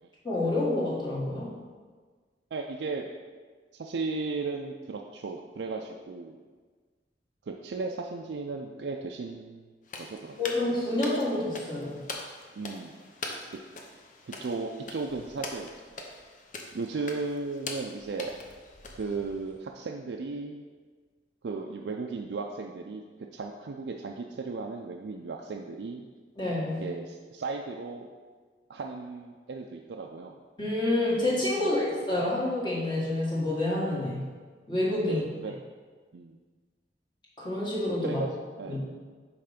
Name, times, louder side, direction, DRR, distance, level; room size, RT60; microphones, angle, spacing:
voice 1, 0.2-1.5 10.4-12.0 26.4-26.8 30.6-34.2 34.7-35.2 37.4-38.2 38.7-38.9, left 1 dB, 25° left, -6 dB, 1.7 m, -28 dB
voice 2, 2.5-3.0 3.7-6.4 7.5-9.7 10.0-10.4 12.6-12.9 14.3-15.7 16.7-18.3 18.9-20.6 21.4-26.1 26.8-28.1 28.7-30.4 31.6-31.7 35.1-35.6 36.1-36.4 38.0-38.3 38.6-38.8, right 4 dB, 70° right, 1 dB, 0.4 m, -36 dB
sound 1, 9.8-19.6, left 3 dB, 45° left, 0.7 m, -42 dB
5.6 x 4.2 x 5.1 m, 1.5 s
head